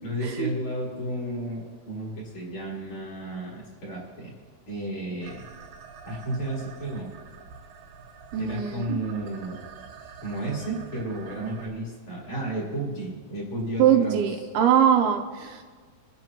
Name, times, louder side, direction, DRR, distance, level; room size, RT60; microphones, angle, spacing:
voice 1, 0.0-4.3 4.7-5.4 6.0-7.1 8.4-9.6 10.2-14.2, right 1 dB, 40° left, -4 dB, 5.1 m, -32 dB
sound 1, 5.2-11.7, right 6 dB, 65° right, 2.1 m, -46 dB
voice 2, 8.3-9.0 13.8-15.6, right 9 dB, 80° right, 3 dB, 2.5 m, -22 dB
25.5 x 10.5 x 3.0 m, 1.5 s
omnidirectional pair, 4.8 m